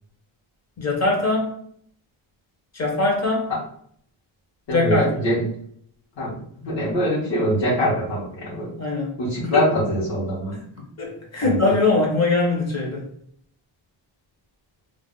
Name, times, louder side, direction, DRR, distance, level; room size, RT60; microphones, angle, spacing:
voice 1, 0.8-1.5 2.7-3.5 4.7-5.1 8.8-9.1 9.5-9.7 11.0-13.1, left 3 dB, 35° left, -1 dB, 0.8 m, -21 dB
voice 2, 4.7-5.5 6.2-6.4 6.6-8.7 9.2-10.5 11.4-11.6, equal, 55° left, -8 dB, 1.1 m, -23 dB
2.5 x 2.1 x 3.7 m, 0.64 s
wide cardioid pair, 165°, 49 cm